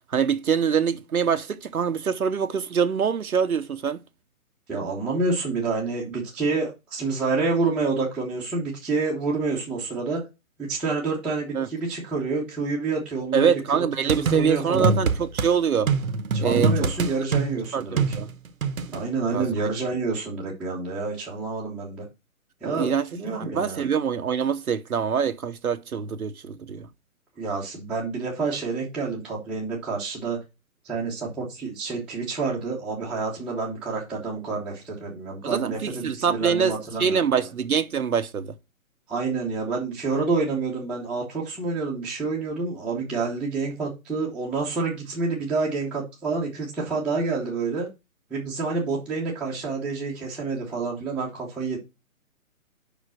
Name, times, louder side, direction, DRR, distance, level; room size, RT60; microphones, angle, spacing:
voice 1, 0.1-4.0 11.5-11.7 13.3-15.9 16.4-16.9 17.7-18.3 19.3-19.7 22.6-26.9 35.4-38.5, right 7 dB, 85° right, 1.0 m, -24 dB
voice 2, 4.7-10.2 10.7-15.0 16.3-18.0 18.9-22.0 22.6-23.9 27.4-30.4 30.8-37.5 39.1-47.9 48.3-51.8, right 4 dB, ahead, 1.0 m, -28 dB
sound 1, 14.1-15.5 15.9-19.0, right 4 dB, 70° right, 1.0 m, -24 dB
5.5 x 5.0 x 6.2 m
hypercardioid pair, 150°, 42 cm